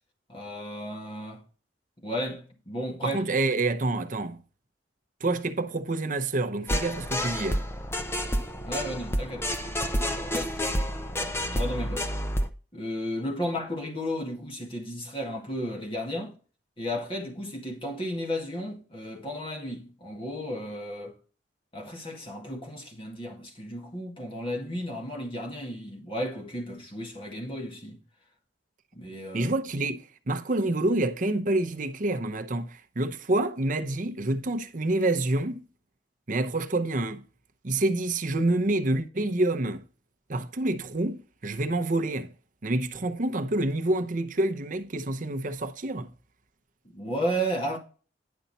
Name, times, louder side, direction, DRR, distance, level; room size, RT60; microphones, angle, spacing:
voice 1, 0.3-1.4 2.0-3.2 8.6-12.1 12.7-16.4 16.8-21.1 21.7-28.0 28.9-29.5 46.8-47.8, equal, 30° left, 2.0 m, -34 dB
voice 2, 3.0-4.4 5.2-7.6 29.3-35.7 36.3-37.2 37.6-39.8 40.3-42.3 42.6-46.1, right 2 dB, 45° right, 0.8 m, -27 dB
sound 1, 6.7-12.5, equal, 15° left, 0.8 m, -29 dB
10.5 x 5.6 x 4.1 m
head